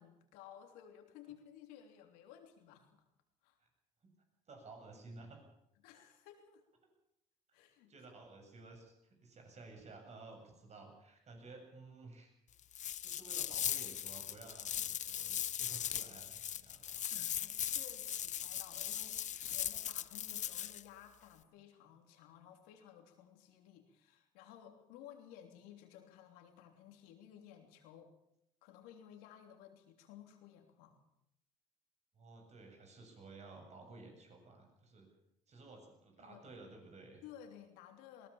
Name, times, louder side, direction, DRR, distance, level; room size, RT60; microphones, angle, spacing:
voice 1, 0.0-3.0 3.4-3.6 5.8-6.6 7.5-7.9 17.1-28.1 28.6-31.0 36.2-36.5 37.2-38.3, left 10 dB, 90° left, 5 dB, 3.3 m, -56 dB
voice 2, 4.5-5.4 7.9-12.3 13.0-17.0 32.2-35.1 35.5-37.2, right 3 dB, 50° right, 3 dB, 7.5 m, -54 dB
sound 1, 12.7-20.8, left 10 dB, 55° left, 0.7 m, -39 dB
20.5 x 18.5 x 7.3 m, 0.79 s
supercardioid pair, 70°, 15 cm